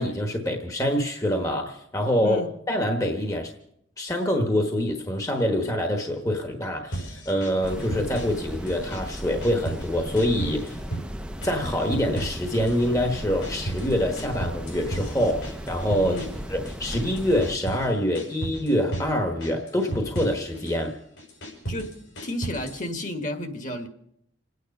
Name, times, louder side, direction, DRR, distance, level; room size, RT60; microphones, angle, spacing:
voice 1, 0.0-3.5 4.0-10.8 11.4-16.2 16.5-20.9, equal, 15° left, 4 dB, 1.2 m, -25 dB
voice 2, 2.2-2.6 16.0-16.4 21.7-22.0 22.2-23.9, equal, 40° left, 6 dB, 1.6 m, -32 dB
sound 1, 6.9-8.4 8.7-9.9 10.2-11.1 11.4-12.9 13.2-17.9 18.1-19.1 19.4-20.8 21.2-22.9, right 2 dB, 75° left, 5.7 m, -35 dB
sound 2, 7.6-17.6, equal, 5° right, 0.6 m, -36 dB
28.0 x 9.4 x 5.3 m, 0.74 s
head